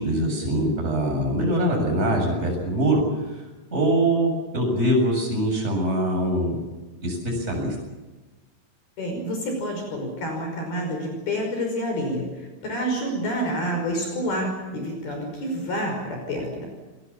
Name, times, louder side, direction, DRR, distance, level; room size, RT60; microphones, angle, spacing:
voice 1, 0.0-3.0 3.3-3.4 3.7-6.6 7.0-7.7, right 1 dB, 15° right, 0 dB, 7.9 m, -23 dB
voice 2, 9.0-16.7, equal, 55° left, 3 dB, 7.3 m, -28 dB
29.5 x 20.5 x 7.3 m, 1.2 s
omnidirectional pair, 5.4 m